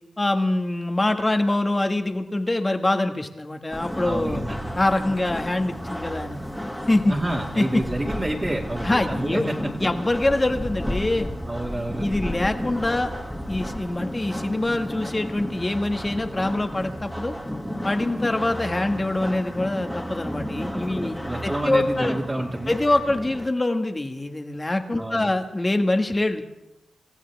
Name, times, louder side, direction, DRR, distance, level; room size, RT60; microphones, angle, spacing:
voice 1, 0.2-4.4 4.8-6.4 6.9-7.1 7.5-7.8 8.8-9.5 9.8-11.3 12.0-13.1 13.5-17.3 17.8-22.2 22.7-26.4, left 2 dB, 25° left, 6 dB, 1.7 m, -24 dB
sound 1, 3.7-23.5, equal, 5° left, 2.4 m, -32 dB
voice 2, 4.0-4.6 7.1-9.7 11.5-12.1 20.7-22.7 25.0-25.3, right 1 dB, 25° right, -3 dB, 2.4 m, -29 dB
27.0 x 14.5 x 3.6 m, 0.95 s
cardioid pair, 50°, 0 cm